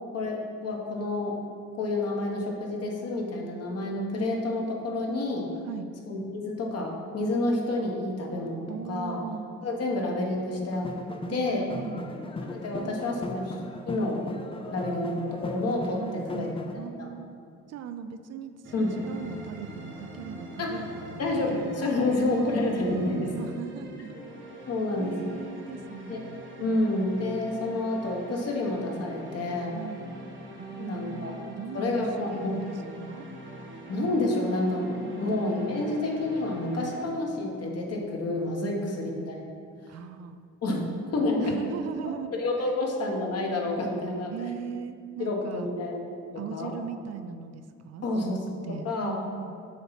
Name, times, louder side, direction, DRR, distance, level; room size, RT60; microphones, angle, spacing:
voice 1, 0.1-1.4 1.7-5.5 6.1-9.2 9.6-10.9 11.3-11.7 12.5-13.6 13.9-14.2 14.7-16.0 16.3-16.5 17.0-17.1 18.7-18.9 20.6-20.8 21.2-23.4 24.7-25.4 26.1-26.2 26.6-29.7 30.8-31.5 31.7-32.6 33.9-39.5 40.6-41.6 42.0-44.3 45.2-46.0 46.3-46.7 48.0-48.4 48.7-49.2, left 2 dB, 55° left, 0 dB, 1.2 m, -29 dB
voice 2, 8.7-9.5 11.3-12.2 12.7-13.4 16.0-17.3 17.7-21.3 21.6-22.2 22.9-24.2 24.5-24.7 25.0-27.0 29.7-30.1 30.6-33.3 35.0-35.3 38.6-39.2 39.9-40.4 41.4-42.3 42.6-42.7 44.3-45.7 46.4-49.6, right 7 dB, 60° right, 10 dB, 0.4 m, -39 dB
sound 1, 10.7-16.7, left 2 dB, 20° left, 0.4 m, -37 dB
sound 2, 18.6-37.1, right 1 dB, 40° right, 1.1 m, -44 dB
7.4 x 2.9 x 5.7 m, 2.2 s
cardioid pair, 90°, 30 cm